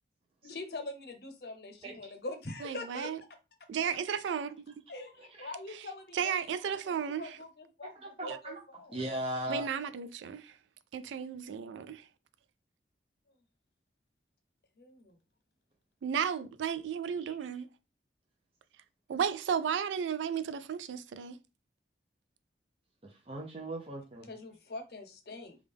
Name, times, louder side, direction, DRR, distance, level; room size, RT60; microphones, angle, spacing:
voice 1, 0.4-3.1 4.9-9.0 14.8-15.2 24.3-25.6, left 2 dB, 60° left, 0.7 m, -44 dB
voice 2, 2.6-3.2 3.7-4.5 6.1-7.2 8.3-8.4 9.5-10.5 10.9-12.0 16.0-17.7 19.1-21.4, right 7 dB, 90° right, 0.3 m, -34 dB
voice 3, 5.2-5.5 7.8-8.6 8.9-9.7 17.2-17.3 23.0-24.3, right 1 dB, 30° right, 0.5 m, -38 dB
3.5 x 2.3 x 3.4 m
head